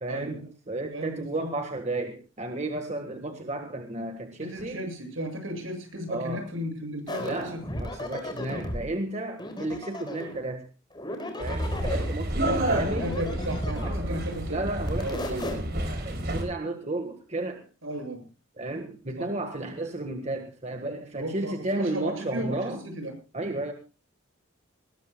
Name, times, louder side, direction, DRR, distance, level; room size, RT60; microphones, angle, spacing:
voice 1, 0.0-4.8 6.1-6.4 7.2-10.7 11.4-13.1 13.8-17.6 18.6-22.8 23.3-23.7, right 2 dB, 35° right, 5 dB, 1.7 m, -33 dB
voice 2, 0.9-1.5 4.4-7.6 12.4-14.6 15.0-15.4 17.8-18.3 19.1-19.2 21.1-23.1, equal, 75° right, 5 dB, 7.9 m, -34 dB
sound 1, 7.1-8.8 9.4-10.4 10.9-12.2 12.9-14.1 14.8-15.5, left 1 dB, 20° left, 4.2 m, -35 dB
sound 2, 11.4-16.4, right 1 dB, 55° right, 4.7 m, -30 dB
21.0 x 20.0 x 2.4 m, 0.32 s
head